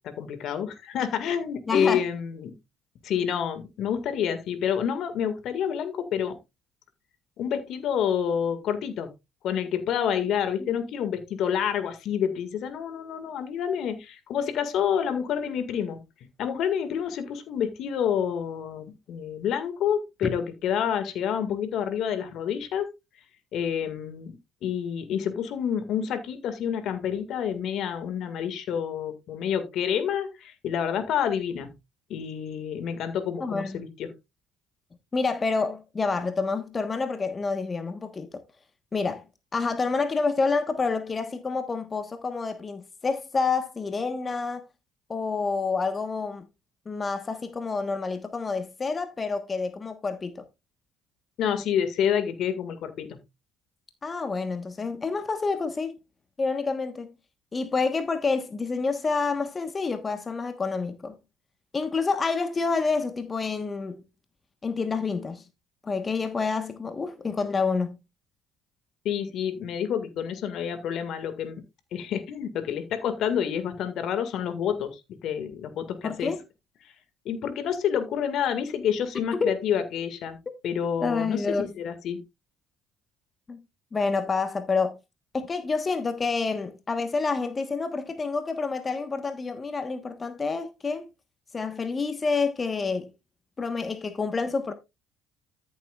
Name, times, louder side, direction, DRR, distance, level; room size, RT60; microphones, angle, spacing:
voice 1, 0.0-2.5 3.0-6.4 7.4-9.1 9.4-16.0 16.4-22.9 23.5-24.3 24.6-31.7 32.1-34.1 51.4-53.2 69.1-71.6 71.9-76.3 77.3-80.4 80.6-82.2, left 8 dB, 65° left, 1.8 m, -28 dB
voice 2, 1.7-2.0 10.6-10.8 20.2-20.3 33.4-33.8 35.1-38.4 38.9-39.2 39.5-44.6 45.1-46.4 46.9-50.4 54.0-56.0 56.4-57.1 57.5-61.2 61.7-64.0 64.6-65.4 65.8-68.0 76.0-76.4 79.3-79.5 81.0-81.7 83.5-83.6 83.9-85.0 85.3-91.1 91.5-93.1 93.6-94.7, left 4 dB, 30° left, 1.2 m, -28 dB
13.5 x 7.3 x 2.4 m
hypercardioid pair, 65°, 0 cm